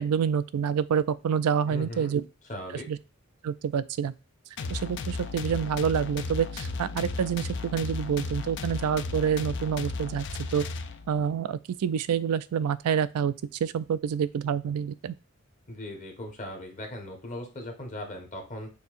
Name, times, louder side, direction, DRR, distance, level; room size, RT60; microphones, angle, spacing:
voice 1, 0.0-2.2 2.9-3.0 3.4-4.1 4.7-10.2 10.5-10.6 11.1-13.3 13.6-15.2, right 7 dB, 90° right, 0.4 m, -27 dB
voice 2, 1.7-2.2 2.5-2.9 15.7-18.7, left 1 dB, 35° left, 1.2 m, -38 dB
sound 1, 4.6-11.3, left 3 dB, 50° left, 0.4 m, -35 dB
6.7 x 2.7 x 2.5 m
head